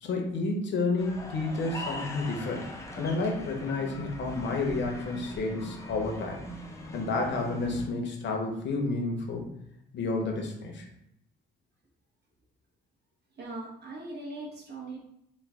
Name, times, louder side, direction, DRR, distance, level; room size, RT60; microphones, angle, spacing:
voice 1, 0.0-2.6 3.0-6.4 6.9-9.4 9.9-10.8, left 3 dB, 65° left, 2 dB, 0.8 m, -30 dB
sound 1, 1.0-7.9, equal, 15° left, 0.6 m, -41 dB
voice 2, 13.4-15.0, right 2 dB, 55° right, -2 dB, 1.1 m, -40 dB
3.1 x 2.2 x 3.5 m, 0.77 s
cardioid pair, 90°, 20 cm